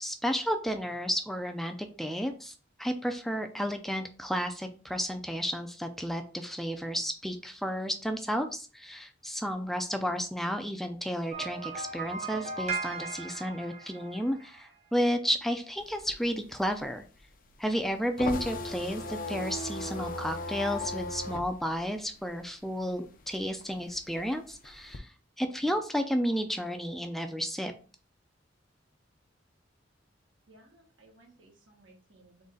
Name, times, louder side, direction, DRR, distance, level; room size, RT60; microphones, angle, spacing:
voice 1, 0.0-2.5 2.8-17.0 17.6-25.1 25.4-27.7, equal, ahead, 6 dB, 0.4 m, -32 dB
sound 1, 11.3-14.7, right 4 dB, 35° right, 0.7 m, -37 dB
sound 2, 15.8-22.9 23.2-25.0, left 2 dB, 45° left, 0.6 m, -37 dB
voice 2, 30.5-32.5, right 1 dB, 85° right, 1 dB, 1.5 m, -59 dB
4.0 x 3.2 x 3.7 m, 0.36 s
head